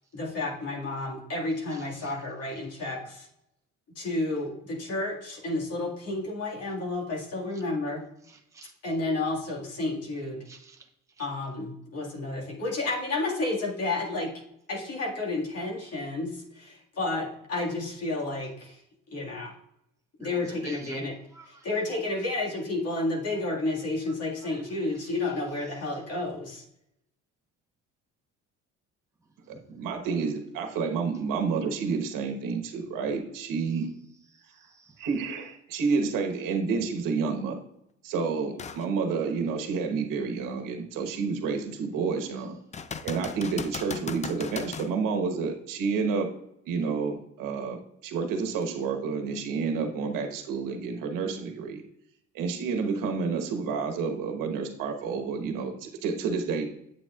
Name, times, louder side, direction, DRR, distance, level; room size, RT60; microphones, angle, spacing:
voice 1, 0.1-3.3 4.0-8.0 8.8-10.4 11.2-14.3 14.7-18.8 19.1-19.5 20.2-21.1 21.6-26.6, left 2 dB, 50° left, -1 dB, 1.9 m, -31 dB
voice 2, 10.5-10.9 20.2-21.1 21.3-21.7 24.4-24.9 29.5-29.8 34.5-35.0, right 3 dB, 10° right, 2 dB, 0.9 m, -47 dB
voice 3, 29.5-33.9 35.0-37.6 38.0-42.6 43.0-46.3 46.7-51.8 52.3-56.7, right 5 dB, 75° right, 4 dB, 1.2 m, -29 dB
sound 1, 38.6-38.9 39.4-39.5 42.7-44.9 48.6-48.7, left 6 dB, 20° left, 0.4 m, -37 dB
8.1 x 7.2 x 2.4 m, 0.77 s
cardioid pair, 90°, 33 cm